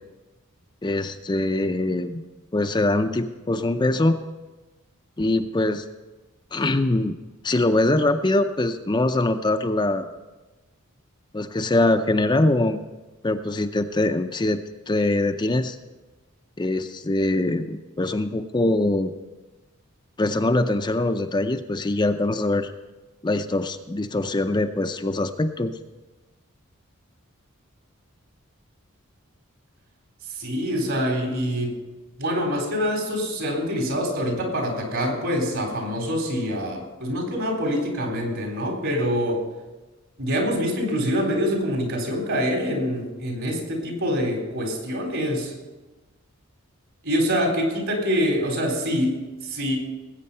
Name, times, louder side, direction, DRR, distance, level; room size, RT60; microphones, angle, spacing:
voice 1, 0.8-2.2 2.5-4.2 5.2-5.9 6.5-7.1 7.4-10.2 11.3-12.8 13.2-14.6 14.9-15.8 16.6-19.1 20.2-22.7 23.2-25.7, left 2 dB, 20° left, 7 dB, 0.5 m, -23 dB
voice 2, 30.3-31.8 32.2-39.4 40.2-45.5 47.0-49.8, equal, 65° right, 1 dB, 3.9 m, -25 dB
19.5 x 8.6 x 5.5 m, 1.2 s
head